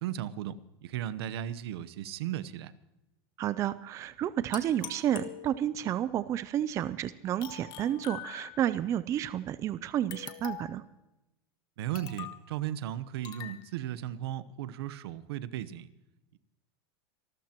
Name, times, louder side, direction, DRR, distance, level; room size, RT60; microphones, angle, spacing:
voice 1, 0.0-2.7 11.8-15.9 16.3-16.4, right 11 dB, 70° right, 15 dB, 1.0 m, -36 dB
voice 2, 3.4-10.8, right 11 dB, 20° right, 15 dB, 0.4 m, -31 dB
sound 1, 4.5-5.9 7.4-8.8 10.1-10.9 11.9-12.5 13.2-13.6, left 11 dB, 30° left, 1.5 m, -43 dB
26.0 x 13.5 x 3.0 m, 0.97 s
supercardioid pair, 150°, 14 cm